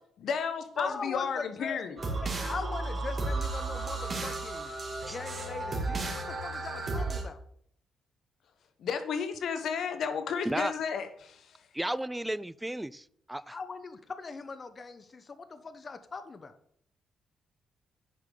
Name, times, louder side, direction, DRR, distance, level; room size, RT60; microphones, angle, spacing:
voice 1, 0.2-2.0 8.8-11.7, left 6 dB, 70° left, 0.9 m, -33 dB
voice 2, 0.8-1.8 2.2-4.7 5.0-7.4 13.5-16.5, left 4 dB, 40° left, 0.8 m, -40 dB
sound 1, 2.0-7.2, right 2 dB, 40° right, 2.2 m, -33 dB
voice 3, 11.7-13.6, right 1 dB, 10° right, 0.3 m, -33 dB
9.8 x 5.0 x 3.8 m
cardioid pair, 85°, 0 cm